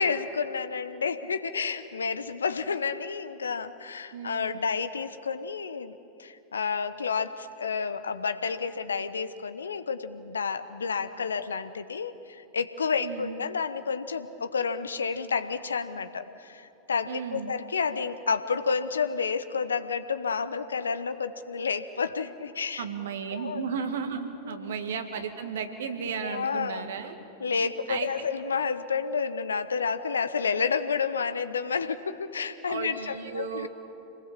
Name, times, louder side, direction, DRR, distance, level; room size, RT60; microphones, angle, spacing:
voice 1, 0.0-22.8 23.3-23.7 24.5-24.7 26.2-26.8 27.4-33.7, left 5 dB, 75° left, 12 dB, 1.0 m, -30 dB
voice 2, 4.1-4.6 13.0-13.4 17.1-17.5 22.8-27.2 27.6-28.1 32.7-33.7, right 6 dB, 65° right, 6 dB, 2.0 m, -34 dB
27.5 x 20.0 x 7.5 m, 2.9 s
figure-of-eight pair, 90°, 0 cm